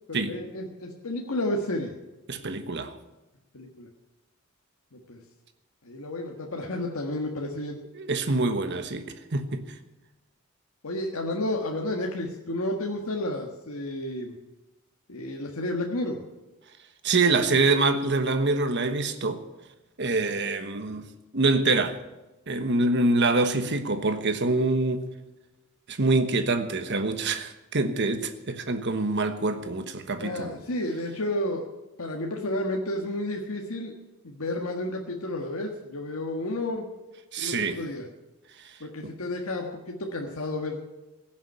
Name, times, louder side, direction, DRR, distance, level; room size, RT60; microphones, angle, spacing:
voice 1, 0.1-1.9 3.5-3.9 4.9-5.2 5.8-7.8 10.8-14.3 15.1-16.2 30.2-31.7 32.0-33.9 34.2-36.9 37.4-38.1 38.8-40.8, left 1 dB, 85° left, 1.6 m, -31 dB
voice 2, 2.3-2.9 7.9-9.6 17.0-19.4 20.0-21.1 21.3-22.0 22.5-25.1 25.9-30.5 37.3-37.8 39.0-39.1, right 3 dB, 55° right, 1.3 m, -25 dB
16.0 x 7.3 x 9.7 m
head